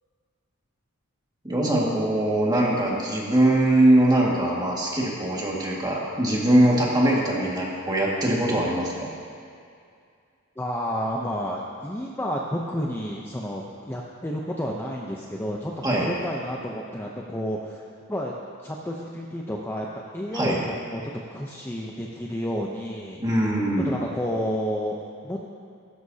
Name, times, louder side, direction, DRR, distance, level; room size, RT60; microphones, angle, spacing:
voice 1, 1.4-9.1 15.8-16.1 20.3-20.6 23.2-23.9, right 1 dB, 20° right, -4 dB, 1.9 m, -22 dB
voice 2, 10.6-17.8 18.1-18.3 18.6-19.9 20.1-21.0 21.3-23.2 23.8-25.0 25.2-25.6, equal, 10° left, -2 dB, 0.7 m, -30 dB
16.0 x 13.0 x 2.8 m, 2.3 s
head